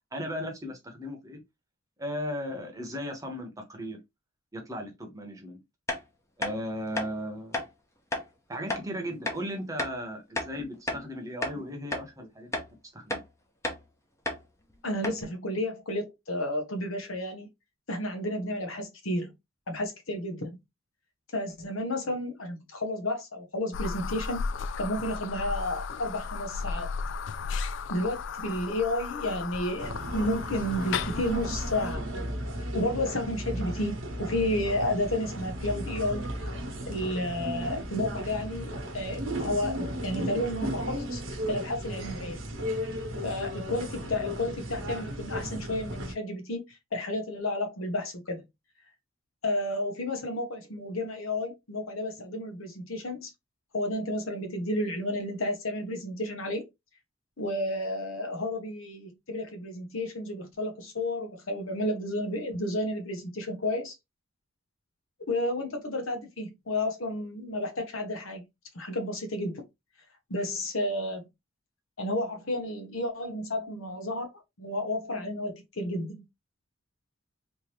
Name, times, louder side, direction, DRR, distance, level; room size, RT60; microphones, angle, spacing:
voice 1, 0.1-1.4 2.0-4.0 4.5-5.6 6.4-7.6 8.5-12.5 12.9-13.2, equal, 15° right, 0.9 m, -36 dB
sound 1, 5.9-6.0 6.4-6.5 6.9-7.1 7.5-7.7 8.1-8.3 8.7-8.8 9.3-9.4 9.8-10.0 10.4-11.1 11.4-11.6 11.9-12.1 12.5-12.7 13.1-13.3 13.6-13.8 14.3-14.4 14.7-14.8 15.0-15.2, left 2 dB, 15° left, 0.7 m, -32 dB
voice 2, 14.8-17.5 17.9-19.3 19.7-20.6 21.3-24.4 24.8-26.9 27.9-32.0 32.7-36.3 36.9-42.4 43.2-46.6 46.9-48.4 49.4-53.3 53.7-56.6 57.4-63.9 65.3-68.5 68.7-69.6 70.3-71.3 72.0-74.3 74.6-76.2, left 1 dB, 85° left, 1.1 m, -31 dB
sound 2, 23.7-31.9, left 5 dB, 65° left, 0.3 m, -35 dB
sound 3, 29.8-46.2, equal, 75° right, 1.1 m, -35 dB
3.7 x 2.7 x 3.1 m
head